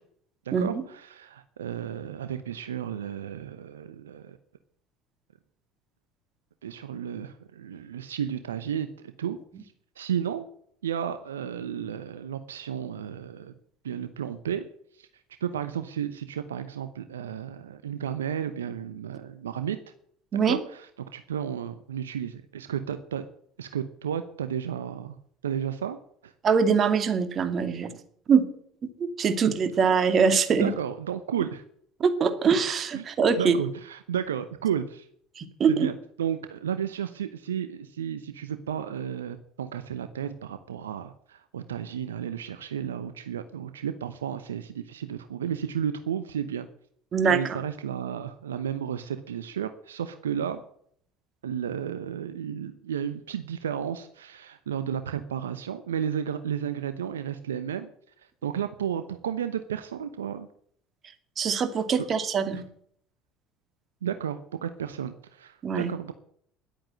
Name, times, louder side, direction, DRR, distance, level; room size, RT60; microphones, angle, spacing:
voice 1, 0.4-4.4 6.6-10.5 10.8-13.5 13.8-14.7 14.9-15.1 15.4-19.8 20.3-23.2 23.6-25.2 25.4-26.3 30.6-31.6 32.9-33.1 33.4-35.1 35.7-46.7 47.2-50.6 51.4-57.9 58.2-60.5 61.9-62.0 62.5-62.6 64.0-66.1, right 9 dB, 85° right, 11 dB, 0.8 m, -33 dB
voice 2, 26.4-27.9 28.3-28.5 29.0-30.7 32.0-33.6 35.4-35.9 47.1-47.6 61.4-62.6 65.6-65.9, right 6 dB, 40° right, 9 dB, 2.3 m, -23 dB
11.5 x 8.9 x 9.3 m, 0.64 s
hypercardioid pair, 70°, 0 cm